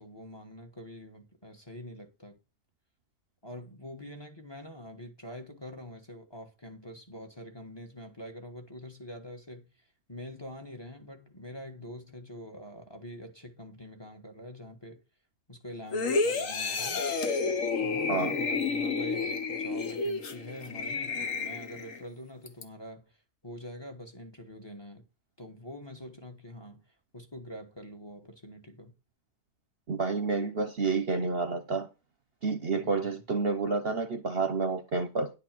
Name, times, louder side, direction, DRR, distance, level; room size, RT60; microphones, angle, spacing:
voice 1, 0.0-2.4 3.4-15.0 15.5-17.0 17.8-25.0 25.4-28.9 32.7-33.2, left 1 dB, 20° left, 1.3 m, -45 dB
sound 1, 15.9-22.0 22.5-22.6, left 4 dB, 65° left, 1.5 m, -30 dB
voice 2, 29.9-31.9 32.4-35.3, right 4 dB, 45° right, 1.0 m, -29 dB
10.5 x 4.2 x 7.5 m
omnidirectional pair, 1.5 m